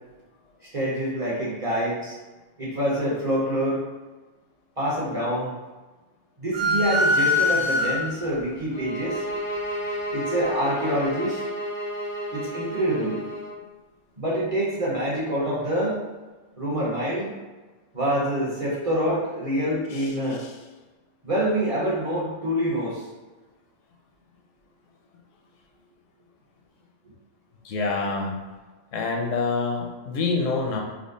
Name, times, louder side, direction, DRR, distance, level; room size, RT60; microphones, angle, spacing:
voice 1, 0.7-2.2 2.6-3.8 4.8-5.5 6.4-9.2 10.1-11.4 12.3-13.2 14.2-16.0 16.6-17.3 17.9-20.4 21.2-23.0, right 1 dB, 30° right, -7 dB, 0.7 m, -26 dB
sound 1, 6.5-8.4, left 2 dB, 65° right, 0.9 m, -22 dB
sound 2, 8.7-13.6, equal, 65° left, 0.4 m, -31 dB
voice 2, 19.9-20.5 27.6-28.4 28.9-30.8, left 4 dB, 80° left, 1 dB, 0.9 m, -27 dB
3.5 x 2.0 x 3.8 m, 1.2 s
omnidirectional pair, 1.3 m